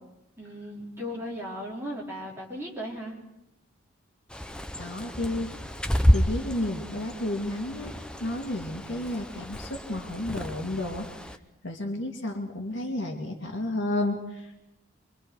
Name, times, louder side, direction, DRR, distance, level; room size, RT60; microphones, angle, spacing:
voice 1, 0.4-3.1, equal, 10° right, -5 dB, 4.4 m, -36 dB
Bird, 4.3-11.4, equal, 5° left, 0.7 m, -30 dB
voice 2, 4.8-5.5 6.1-7.9 8.2-11.1 11.6-14.6, left 1 dB, 60° left, 2 dB, 2.4 m, -31 dB
25.5 x 24.0 x 4.7 m, 0.89 s
head